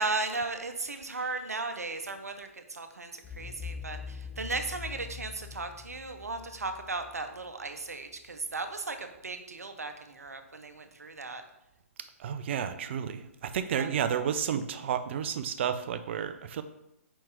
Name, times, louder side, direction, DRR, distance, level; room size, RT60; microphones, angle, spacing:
voice 1, 0.0-11.4 13.7-13.9, right 3 dB, 85° right, 7 dB, 0.8 m, -36 dB
sound 1, 3.2-8.1, left 6 dB, 10° left, 0.3 m, -43 dB
voice 2, 12.2-16.6, right 8 dB, 50° right, 10 dB, 0.5 m, -31 dB
4.9 x 4.5 x 4.6 m, 0.85 s
figure-of-eight pair, 125°, 8 cm